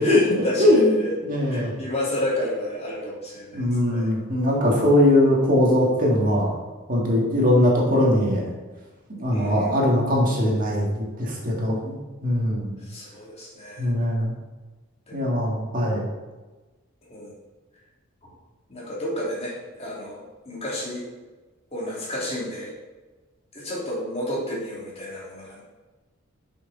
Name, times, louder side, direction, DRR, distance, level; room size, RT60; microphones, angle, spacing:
voice 1, 0.0-1.1 1.5-4.1 9.3-9.9 12.8-13.9 15.1-15.3 17.0-17.3 18.7-21.0 21.7-22.7 23.5-25.6, left 1 dB, 30° left, -5 dB, 2.4 m, -31 dB
voice 2, 0.6-1.0 1.2-1.7 3.5-6.5 6.9-8.4 9.1-12.0 12.2-12.7 13.8-14.3 15.1-16.0, left 1 dB, 40° right, -3 dB, 1.9 m, -20 dB
9.4 x 6.3 x 4.0 m, 1.2 s
head